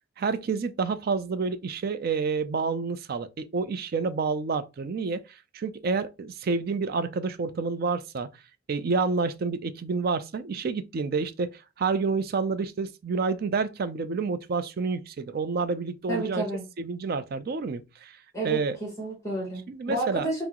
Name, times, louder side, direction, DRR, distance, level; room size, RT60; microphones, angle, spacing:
voice 1, 0.2-8.3 8.7-16.4 16.8-18.2 18.4-18.8 19.7-20.3, right 4 dB, 50° right, 0.4 m, -29 dB
voice 2, 16.1-16.6 18.3-20.4, right 2 dB, 15° left, 1.0 m, -31 dB
5.8 x 2.0 x 2.9 m
head